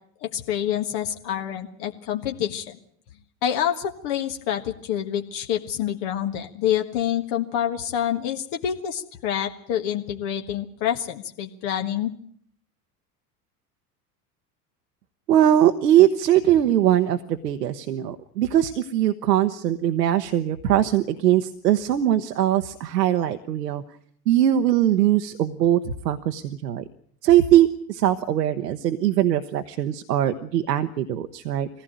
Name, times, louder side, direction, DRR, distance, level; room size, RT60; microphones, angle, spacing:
voice 1, 0.2-2.8 3.4-12.1, left 10 dB, 60° left, 4 dB, 1.7 m, -27 dB
voice 2, 15.3-23.8 24.3-26.8 27.2-31.7, right 11 dB, 85° right, 8 dB, 1.0 m, -21 dB
20.5 x 15.5 x 9.1 m, 0.64 s
hypercardioid pair, 80°, 47 cm